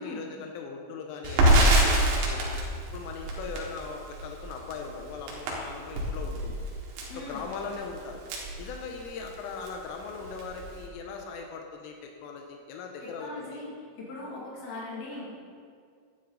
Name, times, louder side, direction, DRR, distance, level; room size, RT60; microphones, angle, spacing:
voice 1, 0.0-2.5 2.9-6.6 7.2-8.2 8.6-13.6, left 5 dB, 85° left, 2 dB, 3.4 m, -39 dB
Crackle, 1.2-9.3 9.6-9.8 10.1-10.8, right 1 dB, 75° right, 4.0 m, -26 dB
voice 2, 7.1-7.5 13.0-13.7 14.0-15.3, left 2 dB, 50° left, -6 dB, 3.9 m, -39 dB
11.0 x 11.0 x 4.0 m, 2.1 s
omnidirectional pair, 5.7 m